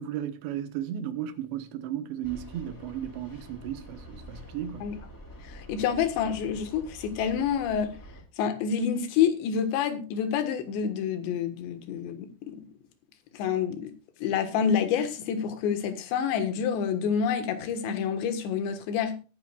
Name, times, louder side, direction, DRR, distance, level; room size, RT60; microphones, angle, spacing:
voice 1, 0.0-4.9, right 10 dB, 70° right, 3.2 m, -35 dB
sound 1, 2.2-8.2, equal, 20° left, 3.8 m, -46 dB
voice 2, 5.5-8.0 8.4-12.7 13.3-13.9 14.2-19.2, left 7 dB, 70° left, 3.5 m, -28 dB
20.5 x 9.3 x 2.4 m
omnidirectional pair, 5.5 m